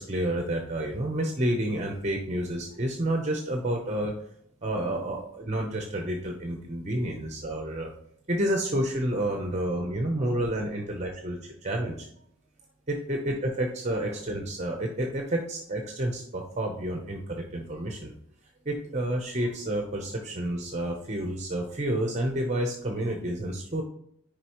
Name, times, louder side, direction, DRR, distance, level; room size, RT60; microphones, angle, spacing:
voice 1, 0.0-4.1 4.6-7.9 8.3-12.1 12.9-18.1 18.6-23.8, right 1 dB, 35° right, 2 dB, 0.8 m, -30 dB
9.7 x 5.0 x 3.0 m, 0.70 s
head